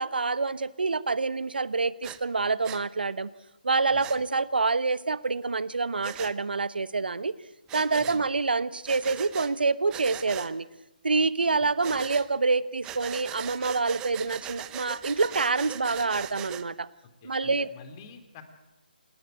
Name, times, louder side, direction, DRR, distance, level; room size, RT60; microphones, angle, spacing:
voice 1, 0.0-3.3 3.6-7.4 7.7-10.7 11.0-16.9 17.2-17.7, right 4 dB, 70° right, 17 dB, 1.1 m, -27 dB
Breathing, 2.0-2.2 2.6-2.8 4.0-4.2 6.0-6.3 7.7-8.2 8.9-9.5 9.9-10.5 11.8-12.3 12.8-16.6, right 12 dB, 15° right, 0.9 m, -40 dB
voice 2, 8.0-8.3 11.9-12.0 17.2-18.4, left 5 dB, 25° left, 8 dB, 3.1 m, -48 dB
28.5 x 18.5 x 9.2 m, 1.0 s
figure-of-eight pair, 150°, 5 cm